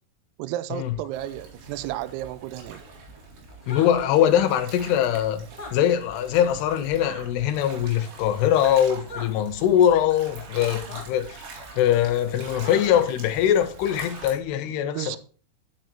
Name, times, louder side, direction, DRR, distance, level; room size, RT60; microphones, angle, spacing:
voice 1, 0.4-2.8 14.8-15.2, right 14 dB, 90° right, 2.3 m, -33 dB
sound 1, 0.8-14.5, right 1 dB, 20° right, 5.0 m, -52 dB
sound 2, 1.1-14.3, right 4 dB, 70° right, 4.2 m, -44 dB
sound 3, 3.6-3.9 5.5-5.7 7.0-7.2 9.1-9.3 10.9-11.0 12.6-13.0, left 2 dB, 30° left, 0.6 m, -38 dB
voice 2, 3.7-5.4 5.7-11.4 11.7-15.2, left 10 dB, 75° left, 2.6 m, -22 dB
10.5 x 6.5 x 4.4 m
omnidirectional pair, 5.3 m